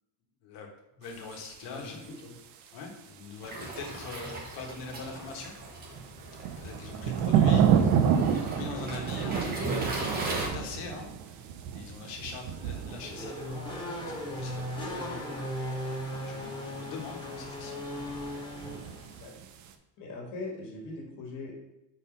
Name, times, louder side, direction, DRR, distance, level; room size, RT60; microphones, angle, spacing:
voice 1, 0.4-2.0 2.7-5.5 6.6-15.5 15.9-17.9, left 4 dB, 65° left, 2 dB, 1.5 m, -43 dB
sound 1, 1.1-2.4 2.9-3.0 3.6-4.9 5.3-19.7, right 8 dB, 40° right, 0.4 m, -31 dB
Waves surf, 3.4-10.5, right 2 dB, 20° right, 0.9 m, -37 dB
Race car auto racing / Accelerating revving vroom, 12.5-19.2, equal, 10° left, 0.8 m, -37 dB
voice 2, 20.0-21.5, left 3 dB, 45° left, 0 dB, 1.8 m, -41 dB
5.4 x 4.2 x 5.2 m, 0.92 s
cardioid pair, 180°, 46 cm